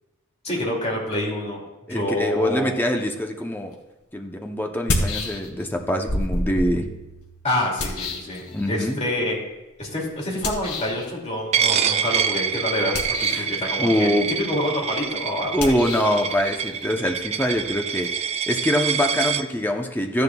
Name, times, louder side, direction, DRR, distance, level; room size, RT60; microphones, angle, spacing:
voice 1, 0.4-1.6 1.9-2.7 7.4-9.4 9.8-15.8, left 1 dB, 30° left, -2 dB, 2.3 m, -27 dB
voice 2, 1.9-3.7 4.1-6.8 8.5-9.0 13.3-13.5 13.8-14.3 15.5-18.1 18.5-20.2, equal, 10° left, 2 dB, 0.6 m, -24 dB
sound 1, 3.7-3.8 4.7-5.7 6.1-8.9 10.4-11.1 12.8-13.6 15.5-18.1, left 2 dB, 90° left, 1.7 m, -30 dB
Coin (dropping), 11.5-19.4, right 7 dB, 30° right, 0.3 m, -26 dB
14.5 x 11.0 x 2.3 m, 1.0 s
head